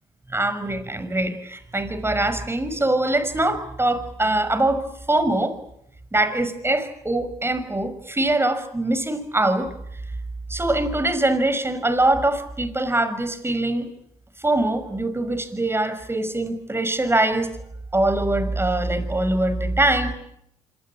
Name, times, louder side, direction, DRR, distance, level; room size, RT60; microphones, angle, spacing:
voice 1, 0.3-5.6 6.1-9.7 10.5-13.9 14.4-17.5 17.9-20.2, right 2 dB, 15° right, 11 dB, 5.8 m, -23 dB
26.5 x 23.5 x 8.7 m, 0.76 s
supercardioid pair, 70°, 16 cm